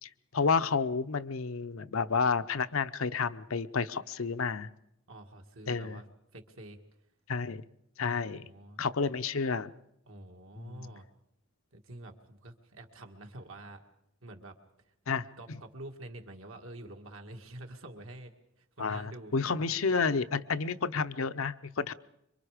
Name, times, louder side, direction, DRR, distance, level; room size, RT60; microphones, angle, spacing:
voice 1, 0.0-4.7 5.7-6.0 7.3-7.6 8.0-8.5 8.8-9.7 10.6-10.9 15.1-15.2 18.8-21.9, left 5 dB, 75° left, 11 dB, 0.7 m, -30 dB
voice 2, 5.1-6.1 6.3-6.8 8.3-8.8 10.1-11.1 11.7-13.8 14.2-14.6 15.4-18.3 18.6-19.4, right 1 dB, 75° right, 4 dB, 2.0 m, -47 dB
26.0 x 23.5 x 5.1 m, 0.78 s
head